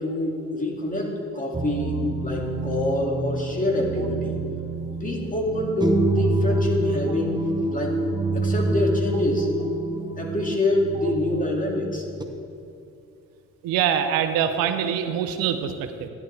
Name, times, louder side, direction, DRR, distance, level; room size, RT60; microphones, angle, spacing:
voice 1, 0.0-4.4 5.0-7.4 7.7-8.0 8.3-9.5 10.2-12.0, left 1 dB, 25° left, 0 dB, 2.5 m, -26 dB
sound 1, 1.5-12.2, right 2 dB, 10° right, 1.0 m, -27 dB
voice 2, 13.6-16.1, right 9 dB, 90° right, 8 dB, 0.8 m, -24 dB
13.5 x 11.0 x 3.4 m, 2.6 s
supercardioid pair, 70°, 34 cm